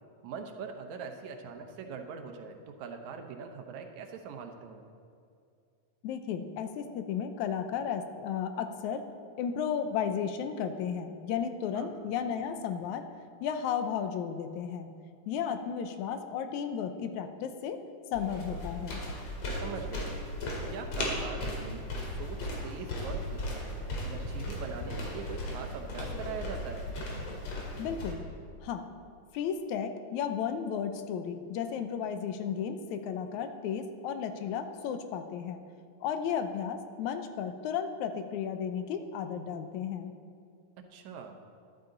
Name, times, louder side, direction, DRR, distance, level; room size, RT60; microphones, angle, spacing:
voice 1, 0.2-4.8 11.8-11.9 19.6-20.1 20.7-21.9 22.2-22.4 22.6-23.6 24.0-26.9 40.9-41.4, right 6 dB, 75° right, 5 dB, 2.2 m, -42 dB
voice 2, 6.0-9.1 9.4-13.1 13.4-14.9 15.3-17.8 18.1-19.0 27.8-28.2 28.6-28.9 29.3-35.6 36.0-40.1, left 7 dB, 80° left, 8 dB, 2.0 m, -34 dB
sound 1, 18.1-28.1, left 1 dB, 55° left, 2.8 m, -36 dB
13.0 x 12.0 x 3.9 m, 2.4 s
omnidirectional pair, 3.5 m